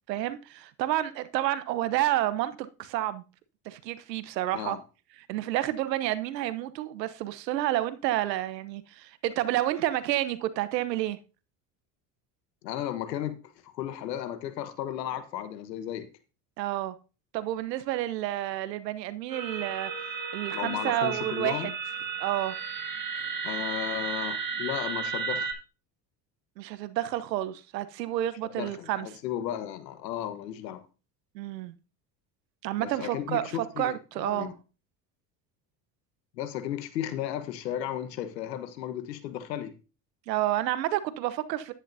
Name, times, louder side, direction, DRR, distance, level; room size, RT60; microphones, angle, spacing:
voice 1, 0.1-3.2 3.6-4.8 5.3-11.2 16.6-16.9 17.3-19.9 20.3-21.7 22.2-22.6 26.6-29.1 31.3-31.7 32.6-34.5 40.3-41.7, right 14 dB, 85° right, 1.0 m, -30 dB
voice 2, 12.6-13.4 13.6-16.1 20.5-21.7 23.4-25.5 28.5-30.8 32.8-34.5 36.4-39.7, left 11 dB, 90° left, 1.3 m, -34 dB
sound 1, 19.3-25.5, right 5 dB, 45° right, 4.3 m, -34 dB
10.5 x 9.9 x 2.7 m
hypercardioid pair, 75°, 48 cm